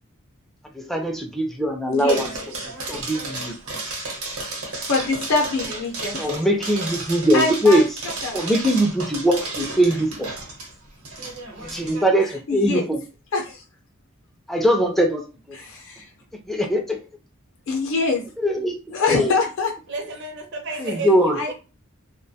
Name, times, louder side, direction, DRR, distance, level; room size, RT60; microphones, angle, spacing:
voice 1, 0.7-2.3 2.9-3.5 6.2-7.8 8.3-10.3 11.6-13.0 14.5-15.6 16.5-17.0 18.4-18.8 19.1-19.3 20.8-21.4, equal, ahead, 0.3 m, -21 dB
voice 2, 1.9-2.2 4.9-6.3 7.3-7.9 8.2-8.6 12.2-12.9 13.3-13.6 15.5-16.1 17.7-18.2 18.9-19.7 20.7-20.8 21.4-21.5, left 3 dB, 65° left, 0.6 m, -24 dB
sound 1, 2.1-12.0, right 2 dB, 80° right, 0.9 m, -33 dB
voice 3, 19.9-21.5, right 3 dB, 55° right, 0.5 m, -32 dB
2.2 x 2.2 x 2.6 m
head